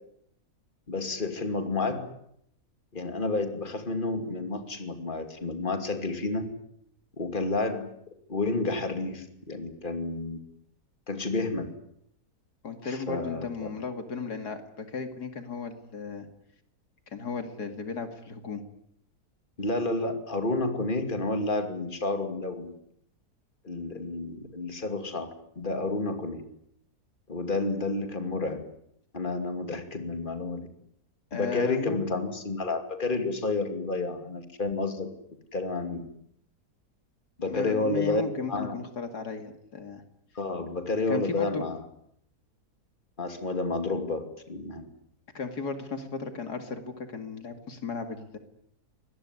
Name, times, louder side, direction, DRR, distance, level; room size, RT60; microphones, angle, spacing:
voice 1, 0.9-2.0 2.9-6.4 7.2-7.9 8.3-10.4 11.1-11.7 12.8-13.7 19.6-22.7 23.6-26.4 27.3-28.6 29.1-30.7 31.3-35.1 35.5-36.0 37.4-38.2 38.5-38.8 40.3-41.8 43.2-44.9, left 3 dB, 30° left, 7 dB, 2.9 m, -30 dB
voice 2, 12.6-16.3 17.1-18.6 31.3-32.0 37.5-40.0 41.1-41.6 45.3-48.4, left 5 dB, 80° left, 7 dB, 2.9 m, -35 dB
24.0 x 20.0 x 9.8 m, 0.73 s
omnidirectional pair, 1.7 m